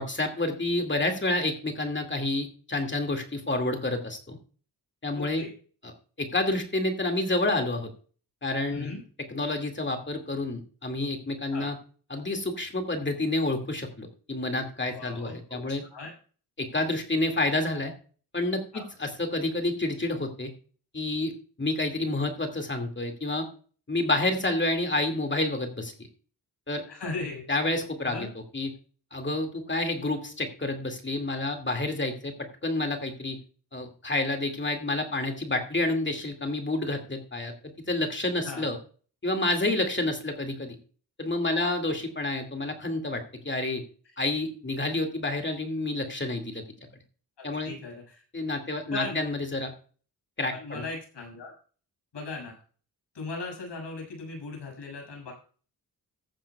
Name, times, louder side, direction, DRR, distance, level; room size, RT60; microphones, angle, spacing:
voice 1, 0.0-4.4 5.0-5.4 5.8-5.9 6.2-7.9 8.4-9.0 9.3-11.8 12.1-15.8 16.6-17.9 18.3-20.5 20.9-21.3 21.6-23.5 23.9-25.9 26.7-26.8 27.5-28.3 28.5-28.7 29.1-33.4 33.7-37.5 37.9-38.8 39.2-40.8 41.2-43.8 44.2-46.6 47.4-47.7 48.3-49.7 50.4-50.8, left 2 dB, 25° left, 4 dB, 2.3 m, -29 dB
voice 2, 5.1-5.5 8.7-9.0 11.5-11.7 14.9-15.3 15.7-16.1 18.7-18.9 26.9-27.4 28.0-28.3 38.4-38.7 41.5-41.7 47.4-48.2 48.9-49.3 50.5-51.5 52.1-52.6 53.1-55.3, left 3 dB, 85° left, 1 dB, 6.6 m, -38 dB
15.0 x 10.0 x 2.3 m, 0.40 s
wide cardioid pair, 125°, 41 cm